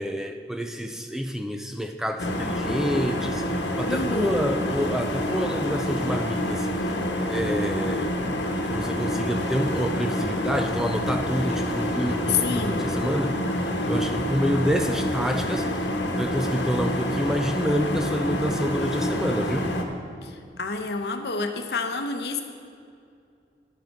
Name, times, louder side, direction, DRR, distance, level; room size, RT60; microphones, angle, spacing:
voice 1, 0.0-6.7 7.3-8.2 8.6-13.4 13.8-15.7 16.2-19.7, equal, 5° right, 6 dB, 0.3 m, -28 dB
sound 1, 2.2-19.8, left 1 dB, 85° left, 1.1 m, -27 dB
voice 2, 3.9-4.3 12.3-12.8 20.2-22.4, left 4 dB, 70° left, 6 dB, 0.9 m, -28 dB
11.0 x 7.5 x 5.4 m, 2.4 s
head